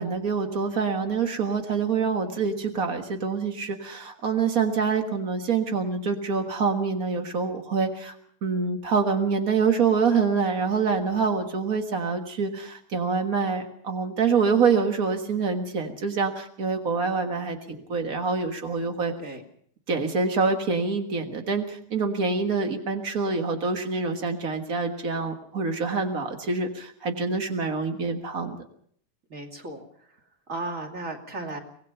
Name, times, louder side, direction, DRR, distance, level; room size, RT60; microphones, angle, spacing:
voice 1, 0.0-8.1 8.4-19.1 19.9-28.6, right 5 dB, 65° right, 5 dB, 0.8 m, -26 dB
voice 2, 29.3-29.8 30.5-31.6, right 2 dB, 25° right, 3 dB, 2.5 m, -35 dB
24.5 x 19.0 x 5.6 m, 0.62 s
omnidirectional pair, 4.1 m